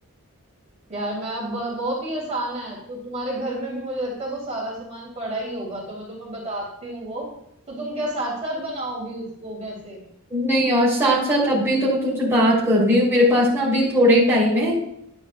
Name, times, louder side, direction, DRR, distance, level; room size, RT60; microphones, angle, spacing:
voice 1, 0.9-7.3 7.7-10.0, right 1 dB, 30° right, -5 dB, 2.9 m, -30 dB
voice 2, 10.3-14.8, equal, 10° right, -8 dB, 3.0 m, -19 dB
11.0 x 8.9 x 2.2 m, 0.75 s
head